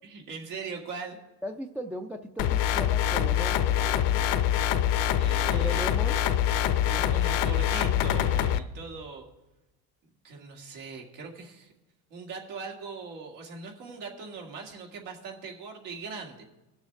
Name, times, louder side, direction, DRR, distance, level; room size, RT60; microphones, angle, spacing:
voice 1, 0.0-1.2 5.1-5.9 6.8-9.2 10.2-11.7 12.1-16.4, right 4 dB, 85° right, 0 dB, 2.3 m, -40 dB
voice 2, 1.4-4.3 5.5-6.2 6.8-7.1, equal, 5° right, 3 dB, 0.3 m, -38 dB
sound 1, 2.4-8.6, left 10 dB, 70° left, 0.8 m, -25 dB
20.5 x 7.1 x 3.4 m, 1.0 s
supercardioid pair, 100°, 45 cm